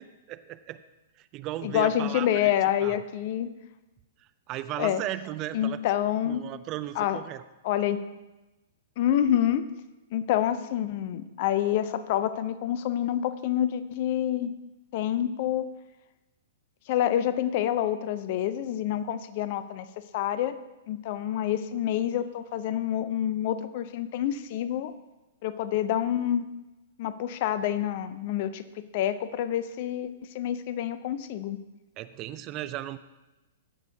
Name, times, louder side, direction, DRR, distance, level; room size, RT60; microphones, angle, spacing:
voice 1, 0.3-0.8 1.2-2.5 2.8-3.0 4.5-5.8 6.2-7.4 32.0-33.0, right 14 dB, 35° right, 13 dB, 0.4 m, -35 dB
voice 2, 1.6-3.5 4.8-5.0 5.5-6.4 7.0-7.2 7.6-8.0 9.0-9.7 10.1-14.5 14.9-15.7 16.9-19.9 20.1-20.5 20.9-24.9 25.4-26.4 27.0-31.6, left 11 dB, 45° left, 13 dB, 0.5 m, -27 dB
15.0 x 6.2 x 2.7 m, 1.0 s
figure-of-eight pair, 110°, 0 cm